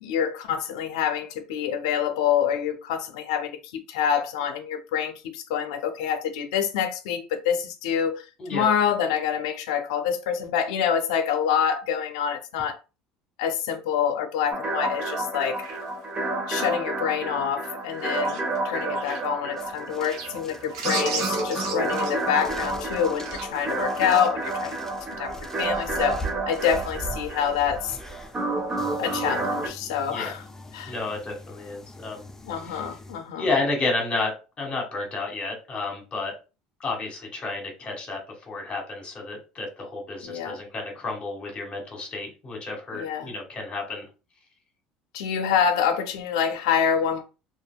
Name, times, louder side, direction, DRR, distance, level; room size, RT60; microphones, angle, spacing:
voice 1, 0.0-8.2 8.5-12.8 13.4-15.6 16.5-24.7 25.2-26.2 26.5-28.0 29.0-30.4 30.7-30.9 32.4-33.5 40.2-40.6 42.9-43.3 45.1-47.2, left 8 dB, 85° left, 0.5 m, -26 dB
sound 1, 14.5-29.7, right 2 dB, 30° right, 0.8 m, -30 dB
sound 2, 15.6-16.3 18.0-19.2 20.0-20.3 20.7-22.5 23.2-23.5 24.1-24.2, right 5 dB, 90° right, 0.8 m, -34 dB
sound 3, 19.6-33.3, equal, 15° left, 0.5 m, -42 dB
voice 2, 30.9-32.2 32.6-32.9 33.4-34.3 34.6-36.3 36.8-38.2 38.5-44.1, left 3 dB, 35° left, 1.4 m, -31 dB
2.7 x 2.5 x 2.3 m
supercardioid pair, 90°, 3 cm